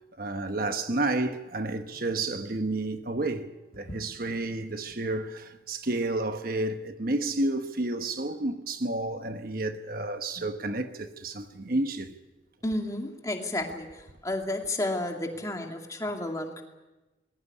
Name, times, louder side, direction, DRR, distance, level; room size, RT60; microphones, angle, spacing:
voice 1, 0.2-12.1, right 2 dB, 50° right, 1.1 m, -31 dB
voice 2, 12.6-16.6, left 1 dB, 20° left, 2.3 m, -32 dB
20.5 x 17.5 x 9.8 m
head